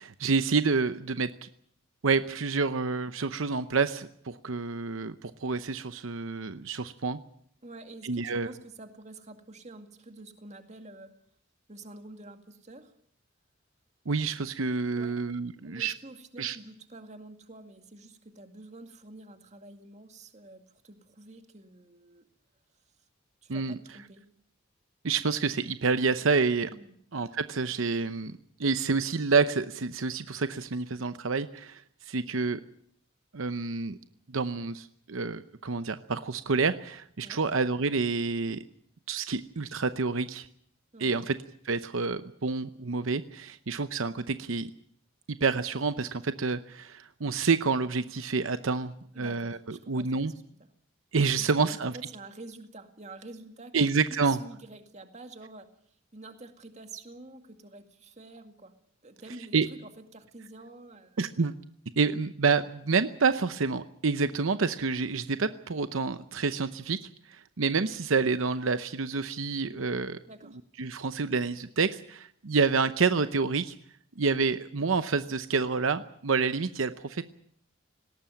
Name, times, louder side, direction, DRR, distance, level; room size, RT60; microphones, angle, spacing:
voice 1, 0.0-1.5 2.0-7.2 8.0-8.5 14.1-15.9 16.4-16.6 23.5-23.7 25.0-26.7 27.1-32.6 33.3-34.0 34.3-38.6 39.1-40.5 41.0-41.3 41.6-44.7 45.4-49.6 49.9-50.3 51.1-51.9 53.7-54.4 59.5-59.7 61.2-61.5 62.0-67.0 67.3-70.2 70.8-73.8 74.2-77.2, right 4 dB, 75° right, 11 dB, 0.8 m, -28 dB
voice 2, 7.6-11.1 11.7-12.9 14.9-15.2 15.6-22.2 23.4-24.2 26.7-26.9 37.2-37.4 40.9-41.2 49.1-50.3 50.6-50.7 51.4-55.7 56.1-58.7 59.0-61.5 70.3-70.6, right 2 dB, 35° right, 6 dB, 2.2 m, -48 dB
19.0 x 18.0 x 9.0 m, 0.67 s
head